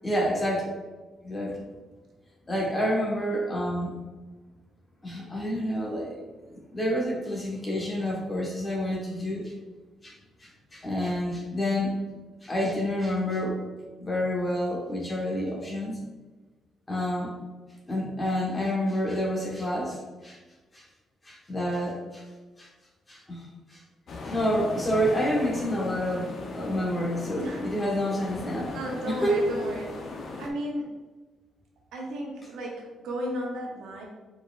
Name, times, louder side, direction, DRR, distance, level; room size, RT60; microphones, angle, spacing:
voice 1, 0.0-0.7 1.2-1.6 2.5-3.9 5.0-6.2 6.5-9.5 10.0-10.1 10.4-11.9 12.4-13.6 14.0-16.0 16.9-17.4 17.9-20.4 20.7-20.8 21.2-22.2 22.6-22.7 23.1-23.8 24.2-28.7 29.0-29.4, equal, 25° left, -4 dB, 1.3 m, -28 dB
sound 1, 24.1-30.5, left 3 dB, 55° left, 0.7 m, -38 dB
voice 2, 27.3-27.7 28.7-31.0 31.9-34.0, equal, 80° right, -1 dB, 1.0 m, -34 dB
4.6 x 4.5 x 2.5 m, 1.3 s
cardioid pair, 90°, 0 cm